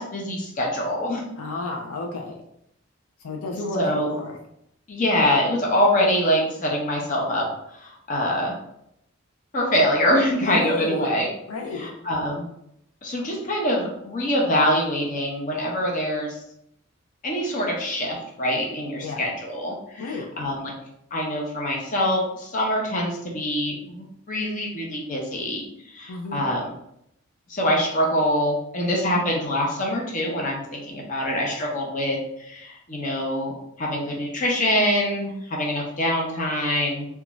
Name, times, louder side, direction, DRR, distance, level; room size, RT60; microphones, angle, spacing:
voice 1, 0.0-1.2 3.7-4.2 4.9-7.4 7.8-8.5 9.5-11.3 11.8-12.5 13.0-16.4 17.2-20.7 21.1-25.6 25.9-26.7 27.5-33.5 33.8-37.1, equal, 40° left, -2 dB, 0.6 m, -24 dB
voice 2, 1.4-2.4 3.2-4.4 10.4-11.1 11.5-11.9 19.0-19.3 20.0-20.3 26.1-26.4, left 3 dB, 90° left, 2 dB, 0.4 m, -31 dB
2.5 x 2.2 x 3.0 m, 0.76 s
head